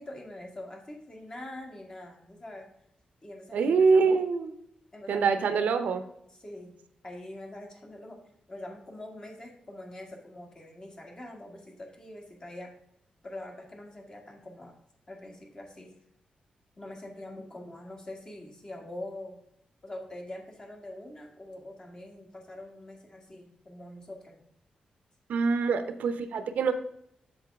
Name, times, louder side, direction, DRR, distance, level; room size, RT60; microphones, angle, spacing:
voice 1, 0.0-2.7 3.2-4.2 4.9-5.7 6.3-6.8 7.0-8.2 8.5-12.7 13.2-14.7 15.1-15.9 16.8-19.4 19.8-24.3 25.6-25.9, left 1 dB, 30° left, 1 dB, 2.2 m, -44 dB
voice 2, 3.5-4.5 5.1-6.0 25.3-26.7, right 5 dB, 85° right, 10 dB, 0.8 m, -24 dB
7.9 x 6.5 x 3.6 m, 0.74 s
cardioid pair, 105°, 3 cm